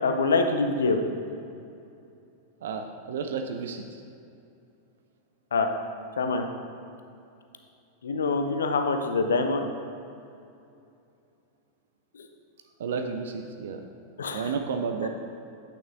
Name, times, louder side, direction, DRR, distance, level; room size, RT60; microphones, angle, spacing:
voice 1, 0.0-1.0 5.5-5.7 6.2-6.4 8.0-9.7 14.2-14.5 15.0-15.1, left 3 dB, 65° left, 6 dB, 0.5 m, -25 dB
voice 2, 2.6-3.8 12.8-13.8 14.3-15.1, right 5 dB, 60° right, 6 dB, 0.4 m, -31 dB
8.6 x 6.0 x 2.6 m, 2.6 s
figure-of-eight pair, 90°, 0 cm